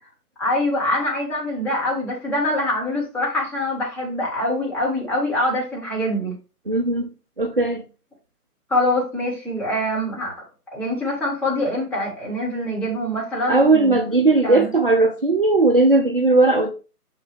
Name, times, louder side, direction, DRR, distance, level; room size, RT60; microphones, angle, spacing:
voice 1, 0.4-6.3 8.7-10.4 10.7-14.0 14.4-14.7, left 1 dB, 5° left, -6 dB, 1.3 m, -24 dB
voice 2, 6.7-7.1 7.4-7.8 13.5-16.7, right 2 dB, 40° right, 6 dB, 0.4 m, -17 dB
6.4 x 5.6 x 3.3 m, 0.32 s
figure-of-eight pair, 140°, 47 cm